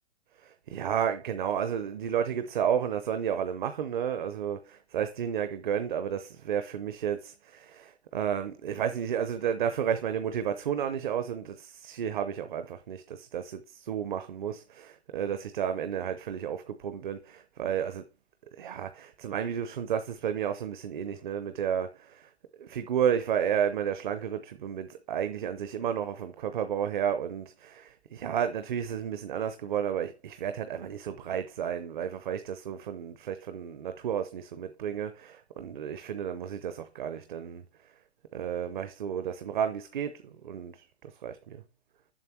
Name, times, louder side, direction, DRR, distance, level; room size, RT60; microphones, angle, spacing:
voice 1, 0.4-18.0 18.6-22.3 22.6-37.9 38.3-41.6, right 8 dB, 45° right, 0.8 m, -32 dB
7.5 x 6.6 x 4.5 m
hypercardioid pair, 160°, 33 cm